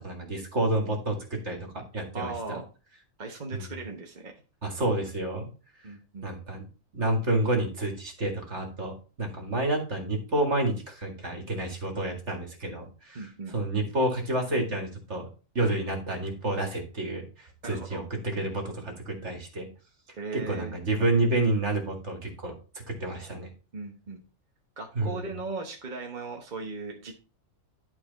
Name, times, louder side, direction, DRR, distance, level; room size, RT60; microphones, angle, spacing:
voice 1, 0.0-2.6 3.5-3.6 4.6-5.5 6.2-6.7 6.9-15.3 15.6-19.7 20.3-22.5 22.9-23.5 25.0-25.3, right 2 dB, 55° right, 2 dB, 2.3 m, -29 dB
voice 2, 2.1-2.7 3.2-4.3 5.8-6.3 13.1-13.6 17.6-18.0 20.2-20.8 23.7-24.2 24.8-27.1, right 3 dB, 35° right, 1 dB, 1.2 m, -37 dB
11.5 x 4.5 x 4.1 m, 0.35 s
omnidirectional pair, 1.4 m